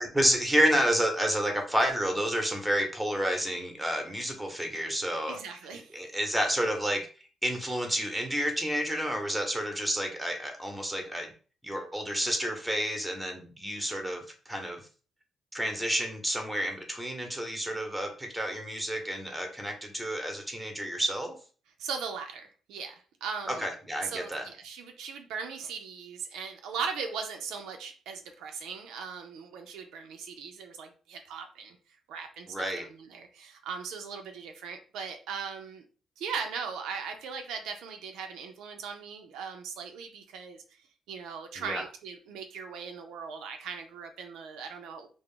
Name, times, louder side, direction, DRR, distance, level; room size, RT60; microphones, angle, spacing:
voice 1, 0.0-5.4 5.9-7.1 7.4-11.3 11.6-14.8 15.5-21.4 23.5-24.5 32.5-32.8 41.6-41.8, equal, 5° right, 3 dB, 0.8 m, -30 dB
voice 2, 5.3-5.9 21.8-23.7 24.0-31.8 32.1-35.8 36.2-40.6 41.1-45.1, right 6 dB, 85° right, 4 dB, 0.4 m, -39 dB
2.3 x 2.0 x 3.6 m, 0.38 s
cardioid pair, 90°, 0 cm